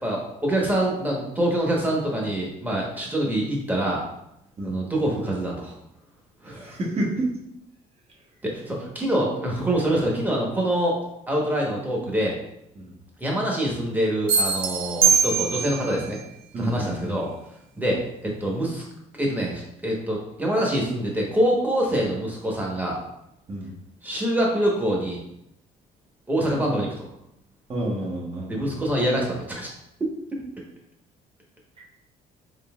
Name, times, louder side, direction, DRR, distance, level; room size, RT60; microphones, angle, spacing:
voice 1, 0.0-4.0 4.6-5.7 6.4-6.8 8.4-11.0 11.3-12.4 13.2-16.2 16.6-17.3 17.8-18.8 19.2-23.0 24.0-25.2 26.3-26.9 28.5-29.7 30.3-30.4, right 1 dB, 10° right, -2 dB, 1.1 m, -25 dB
voice 2, 6.4-7.3 12.8-12.9 16.5-17.2 23.5-23.7 27.7-28.8 31.8-31.9, right 1 dB, 35° right, -3 dB, 1.2 m, -29 dB
sound 1, 14.3-15.9, right 6 dB, 60° right, 0.5 m, -21 dB
3.9 x 3.8 x 2.4 m, 0.80 s
cardioid pair, 110°, 17 cm